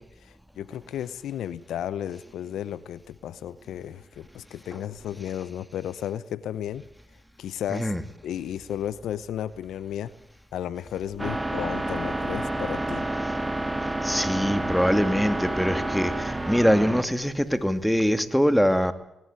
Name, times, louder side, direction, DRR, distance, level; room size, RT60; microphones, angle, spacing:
voice 1, 0.0-6.8 7.4-7.9 8.2-10.1 10.5-13.1, left 10 dB, 80° left, 17 dB, 0.8 m, -33 dB
voice 2, 7.7-8.0 14.0-18.9, equal, ahead, 10 dB, 2.4 m, -23 dB
sound 1, 11.2-17.0, right 1 dB, 20° right, 1.9 m, -29 dB
19.5 x 19.5 x 9.0 m, 0.82 s
supercardioid pair, 50°, 0 cm